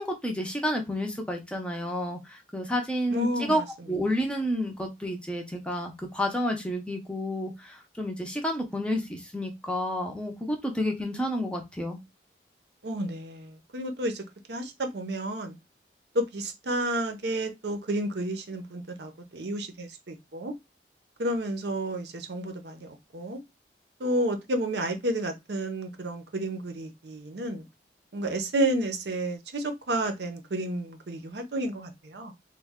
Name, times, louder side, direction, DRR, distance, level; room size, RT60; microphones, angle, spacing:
voice 1, 0.0-3.6 3.9-12.0, equal, 5° left, 0.5 m, -30 dB
voice 2, 3.1-3.6 12.8-14.2 14.5-15.5 16.1-20.5 21.2-23.4 24.0-27.6 28.1-32.3, right 1 dB, 70° right, 0.6 m, -31 dB
3.1 x 2.1 x 3.5 m
head